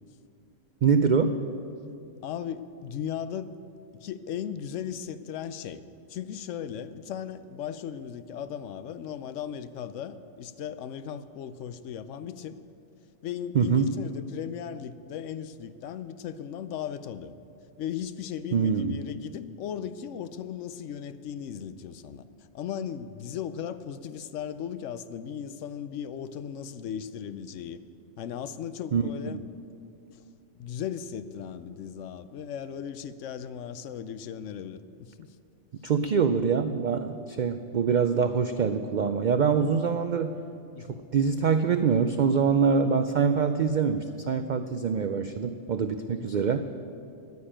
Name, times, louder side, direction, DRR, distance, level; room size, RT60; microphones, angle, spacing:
voice 1, 0.8-1.4 13.5-13.9 18.5-19.0 28.9-29.4 35.8-40.4 40.9-46.6, right 6 dB, 75° right, 9 dB, 0.4 m, -24 dB
voice 2, 2.2-3.6 4.0-5.8 6.1-12.6 13.2-17.3 17.8-22.3 22.5-27.8 28.2-29.4 30.1-30.2 30.5-35.3 40.7-41.0 46.1-46.3, left 8 dB, 75° left, 13 dB, 0.9 m, -37 dB
10.5 x 9.5 x 8.8 m, 2.5 s
omnidirectional pair, 1.3 m